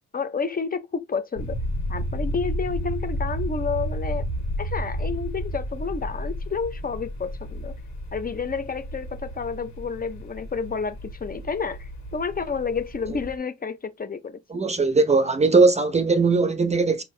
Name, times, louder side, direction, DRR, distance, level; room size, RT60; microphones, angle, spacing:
voice 1, 0.1-1.6 1.9-4.2 4.6-7.7 8.1-14.4, left 5 dB, 30° left, 0.6 m, -30 dB
sound 1, 1.4-13.4, equal, 65° left, 1.8 m, -32 dB
voice 2, 14.5-17.0, right 3 dB, 20° right, 0.6 m, -19 dB
4.5 x 2.7 x 3.2 m
cardioid pair, 90°, 30 cm